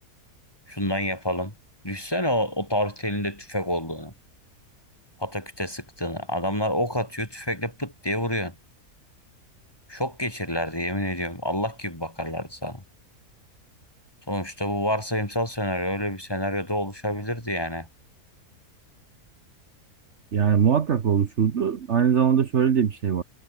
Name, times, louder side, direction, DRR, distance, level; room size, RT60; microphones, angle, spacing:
voice 1, 0.7-1.5 1.8-4.1 5.2-8.6 9.9-12.8 14.3-17.9, equal, 15° left, 5.7 m, -28 dB
voice 2, 20.3-23.2, right 7 dB, 55° right, 1.3 m, -21 dB
omnidirectional pair, 1.6 m